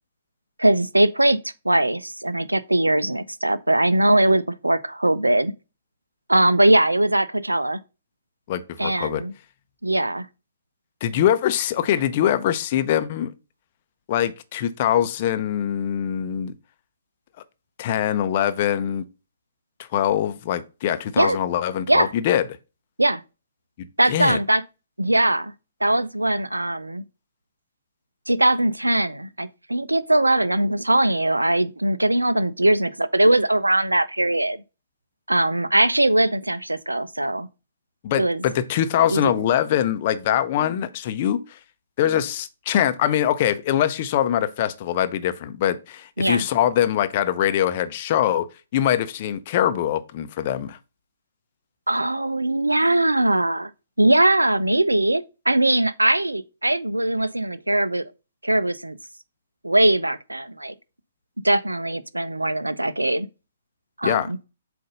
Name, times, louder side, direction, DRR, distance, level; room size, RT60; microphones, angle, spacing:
voice 1, 0.6-1.4 1.6-5.5 6.3-7.8 8.8-9.3 9.8-10.3 21.2-21.4 21.9-22.1 23.0-23.2 24.0-24.6 25.0-25.5 25.8-27.0 28.3-34.6 35.3-37.5 38.2-38.4 39.1-39.3 46.2-46.5 51.9-53.7 54.0-58.1 58.4-59.0 59.6-60.7 61.4-63.3 64.0-64.4, right 1 dB, 90° right, 0.5 m, -21 dB
voice 2, 8.5-9.2 11.0-13.3 14.1-16.5 17.8-19.0 19.9-22.4 23.8-24.4 38.0-41.6 42.0-48.5 48.7-50.8 64.0-64.3, left 10 dB, 40° left, 0.6 m, -23 dB
7.7 x 2.6 x 5.2 m
figure-of-eight pair, 125°, 0 cm